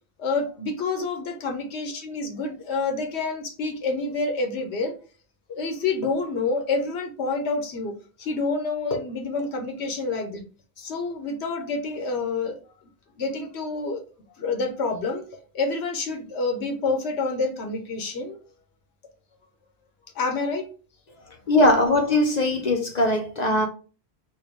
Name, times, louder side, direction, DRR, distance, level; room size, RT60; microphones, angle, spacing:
voice 1, 0.2-4.9 5.5-10.5 10.8-12.6 13.2-14.0 14.4-15.2 15.5-18.4 20.1-20.7 21.2-21.3, left 3 dB, 90° left, 1.0 m, -28 dB
voice 2, 21.5-23.7, left 1 dB, 50° left, 0.6 m, -20 dB
4.4 x 2.3 x 3.4 m
omnidirectional pair, 1.1 m